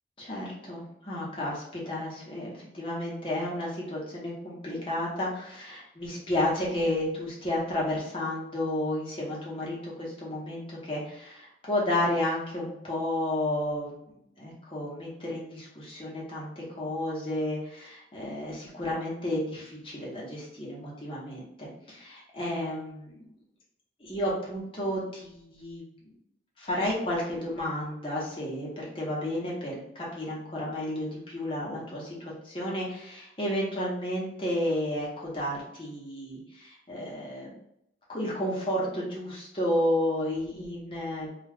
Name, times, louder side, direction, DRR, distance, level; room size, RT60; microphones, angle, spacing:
voice 1, 0.2-23.3 24.0-25.8 26.6-37.5 38.1-41.3, left 1 dB, 30° left, -5 dB, 0.9 m, -32 dB
2.4 x 2.3 x 3.3 m, 0.77 s
head